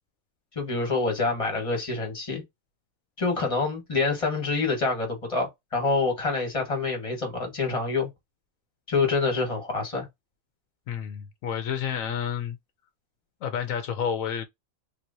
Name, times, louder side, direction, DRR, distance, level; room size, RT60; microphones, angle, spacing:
voice 1, 0.5-2.4 3.2-8.1 8.9-10.1, left 3 dB, 25° left, 1.5 m, -26 dB
voice 2, 10.9-12.6 13.4-14.5, left 8 dB, 75° left, 1.0 m, -30 dB
3.6 x 2.9 x 2.7 m
omnidirectional pair, 1.4 m